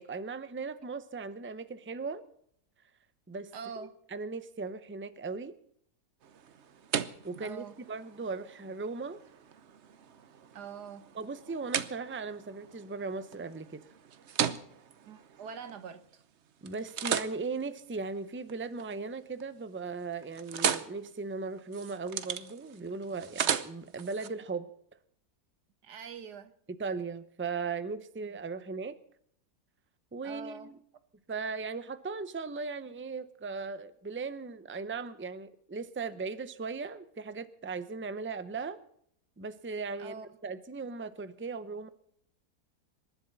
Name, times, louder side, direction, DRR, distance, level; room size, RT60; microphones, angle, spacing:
voice 1, 0.0-2.2 3.3-3.5 4.1-5.5 7.2-9.2 11.1-13.8 16.6-24.7 26.8-29.0 30.1-30.7 31.3-38.8 39.4-41.9, right 4 dB, 15° right, 0.5 m, -38 dB
voice 2, 3.5-4.0 7.4-7.8 10.5-11.1 15.0-16.2 25.8-26.5 30.2-30.7 40.0-40.4, right 6 dB, 85° right, 1.8 m, -44 dB
sound 1, 6.2-16.2 16.7-18.9 19.3-19.7 20.0-24.3, right 8 dB, 55° right, 1.0 m, -37 dB
26.0 x 11.5 x 4.1 m
omnidirectional pair, 1.7 m